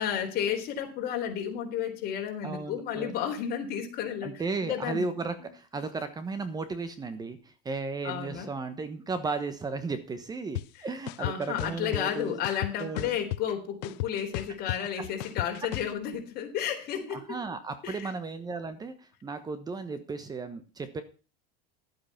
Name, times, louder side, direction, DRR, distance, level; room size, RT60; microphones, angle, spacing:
voice 1, 0.0-4.3 4.6-5.0 8.0-8.5 11.2-17.4 17.8-18.1, left 9 dB, 50° left, 3 dB, 3.7 m, -32 dB
voice 2, 2.4-3.1 4.2-12.3 12.8-13.2 17.1-21.0, right 4 dB, 20° right, 11 dB, 1.1 m, -35 dB
sound 1, 10.5-10.6 11.1-12.0 12.4-13.5 13.8-15.9, left 17 dB, 85° left, 0.6 m, -33 dB
12.0 x 8.5 x 5.8 m, 0.35 s
supercardioid pair, 140°, 21 cm